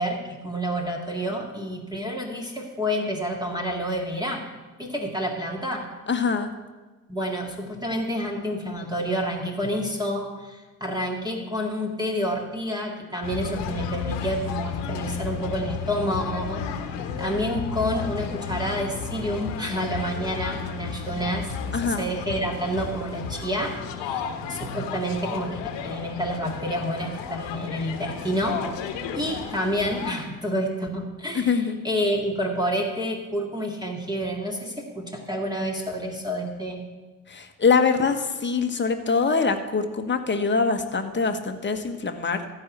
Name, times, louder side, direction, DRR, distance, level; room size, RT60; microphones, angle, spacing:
voice 1, 0.0-4.5 4.8-5.9 7.1-16.6 17.0-28.9 29.2-36.8, equal, 10° right, 0 dB, 2.1 m, -29 dB
voice 2, 6.1-6.5 21.7-22.1 31.3-31.9 37.3-42.5, left 5 dB, 25° left, 6 dB, 1.4 m, -24 dB
sound 1, 13.2-30.1, left 7 dB, 60° left, 1.4 m, -33 dB
14.5 x 4.9 x 8.3 m, 1.3 s
hypercardioid pair, 60°, 47 cm